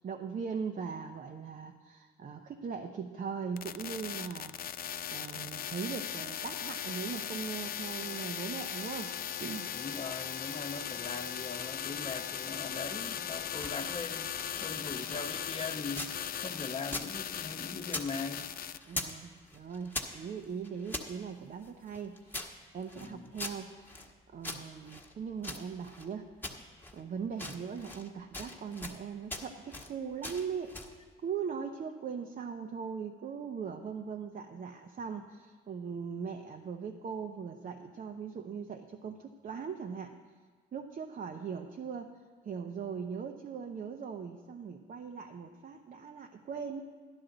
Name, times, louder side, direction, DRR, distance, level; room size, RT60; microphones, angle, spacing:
voice 1, 0.0-4.5 5.1-9.7 18.9-26.7 26.9-40.2 40.7-46.8, right 6 dB, 45° right, 4 dB, 0.7 m, -40 dB
sound 1, 3.6-18.8, left 9 dB, 50° left, 0.4 m, -38 dB
voice 2, 9.7-14.3 14.6-16.1 16.4-18.5 23.0-23.3, left 4 dB, 30° left, 6 dB, 1.0 m, -40 dB
sound 2, 13.4-16.2 16.5-18.1 18.4-19.2 19.5-21.1 21.6-24.1 24.4-26.1 26.4-27.0 27.3-28.1 28.3-29.0 29.3-29.9 30.2-31.0, left 2 dB, 10° left, 1.3 m, -42 dB
12.5 x 11.5 x 3.9 m, 1.5 s
cardioid pair, 90°, 20 cm